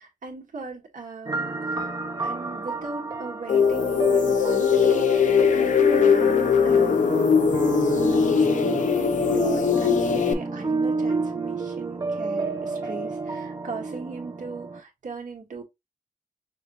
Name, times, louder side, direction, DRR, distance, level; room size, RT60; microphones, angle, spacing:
voice 1, 0.0-6.3 6.6-7.1 8.0-8.5 9.3-15.6, right 4 dB, 70° right, 1.8 m, -39 dB
sound 1, 1.3-14.8, right 3 dB, 30° right, 0.7 m, -30 dB
sound 2, 3.5-10.3, left 6 dB, 65° left, 0.7 m, -20 dB
6.3 x 2.5 x 3.0 m
wide cardioid pair, 175°, 14 cm